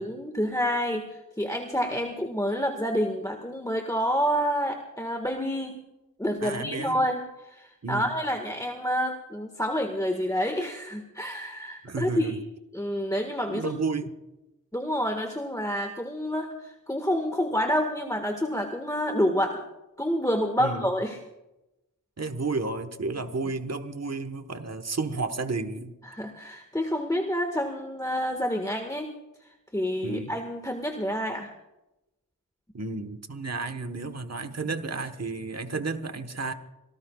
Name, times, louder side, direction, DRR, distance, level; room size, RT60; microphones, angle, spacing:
voice 1, 0.0-5.8 6.2-12.4 12.7-13.7 14.7-19.6 20.0-21.2 26.0-29.1 29.7-31.5, equal, 10° left, 4 dB, 1.6 m, -28 dB
voice 2, 6.4-7.0 7.8-8.1 11.8-12.4 13.5-14.1 20.6-20.8 22.2-25.9 30.0-30.3 32.7-36.5, right 3 dB, 50° right, 8 dB, 1.3 m, -32 dB
26.5 x 18.0 x 2.4 m, 0.95 s
wide cardioid pair, 50°, 34 cm